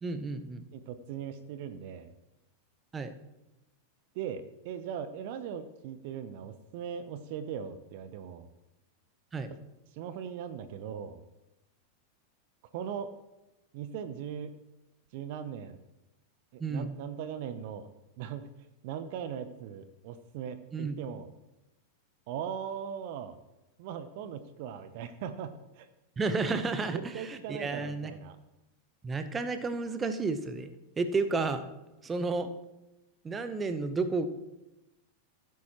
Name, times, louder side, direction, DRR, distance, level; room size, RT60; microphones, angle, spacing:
voice 1, 0.0-0.6 2.9-3.1 9.3-9.5 16.6-16.9 20.7-21.0 26.2-28.1 29.0-31.7 32.0-32.5 33.2-34.3, right 3 dB, 15° right, 9 dB, 0.9 m, -32 dB
voice 2, 0.7-2.1 4.1-8.5 9.5-9.6 9.9-11.2 12.7-13.1 13.7-14.6 15.1-15.8 16.5-17.9 18.2-18.5 18.8-21.3 22.3-23.4 23.8-25.9 26.9-28.4, right 8 dB, 50° right, 12 dB, 0.7 m, -39 dB
16.0 x 9.3 x 3.0 m, 0.97 s
figure-of-eight pair, 90°, 0 cm